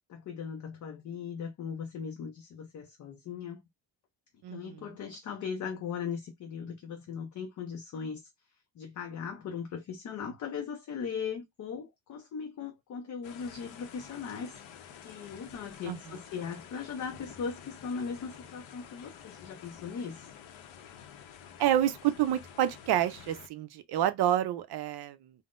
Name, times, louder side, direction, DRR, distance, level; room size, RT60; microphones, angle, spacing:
voice 1, 0.1-3.6 4.5-8.2 8.8-14.7 15.0-20.3, left 6 dB, 40° left, 0.4 m, -39 dB
voice 2, 4.4-5.0 15.9-16.2 21.6-25.3, right 11 dB, 55° right, 0.5 m, -29 dB
sound 1, 13.2-23.5, left 8 dB, 75° left, 0.7 m, -50 dB
3.6 x 2.0 x 2.4 m
cardioid pair, 170°, 47 cm